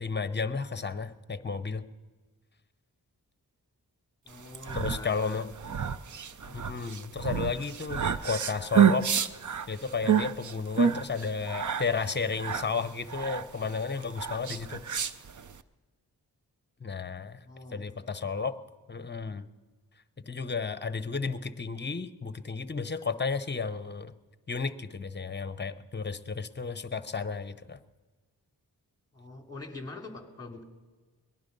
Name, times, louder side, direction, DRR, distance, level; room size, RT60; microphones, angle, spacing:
voice 1, 0.0-1.9 4.7-5.5 6.5-9.1 9.7-15.1 16.8-17.4 17.7-18.6 18.9-19.5 20.3-24.1 24.5-27.8, left 4 dB, 25° left, 12 dB, 0.9 m, -33 dB
voice 2, 4.2-5.5 6.4-6.6 17.4-18.2 29.1-30.6, left 2 dB, 10° left, 2 dB, 3.1 m, -44 dB
sound 1, 4.4-15.6, right 8 dB, 50° right, 0.7 m, -29 dB
20.0 x 11.5 x 5.4 m, 1.3 s
cardioid pair, 50°, 39 cm